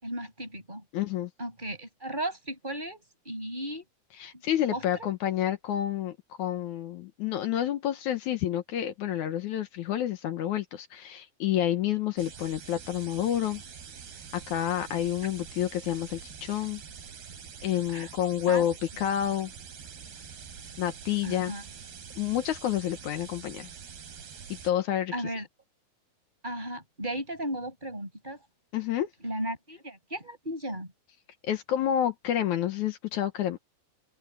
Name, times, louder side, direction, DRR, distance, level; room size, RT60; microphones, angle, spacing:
voice 1, 0.0-0.8 1.4-3.9 4.7-5.1 17.9-18.1 18.5-18.6 21.2-21.6 25.1-25.5 26.4-28.4 29.2-30.9, right 1 dB, 10° right, 6.4 m, -35 dB
voice 2, 0.9-1.3 4.2-13.6 14.3-16.8 17.6-19.5 20.8-21.5 22.2-23.7 24.6-25.1 28.7-29.1 31.4-33.6, left 11 dB, 65° left, 2.0 m, -29 dB
sound 1, 12.2-24.7, right 7 dB, 80° right, 5.6 m, -45 dB
open air
omnidirectional pair, 4.5 m